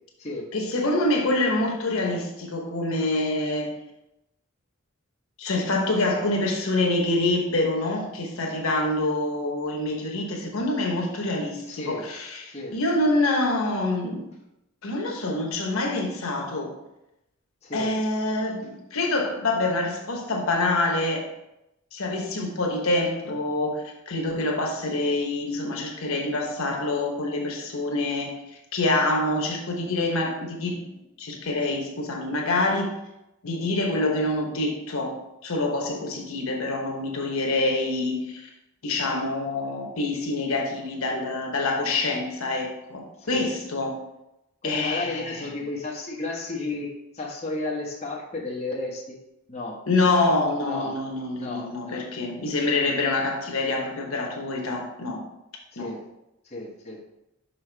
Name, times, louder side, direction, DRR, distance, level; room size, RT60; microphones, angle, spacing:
voice 1, 0.5-3.7 5.4-14.2 14.8-16.7 17.7-21.3 21.9-28.3 28.7-30.8 31.2-32.9 33.4-35.1 35.4-38.5 38.8-44.0 44.6-45.4 49.9-55.2 55.8-55.9, left 2 dB, 80° left, 1 dB, 1.1 m, -26 dB
voice 2, 11.7-12.1 12.5-12.7 17.6-17.9 43.2-43.5 44.6-49.2 49.5-49.8 50.6-51.0 51.4-52.0 55.7-56.0 56.4-57.0, left 2 dB, 30° left, -4 dB, 1.2 m, -33 dB
5.6 x 5.4 x 3.4 m, 0.88 s
head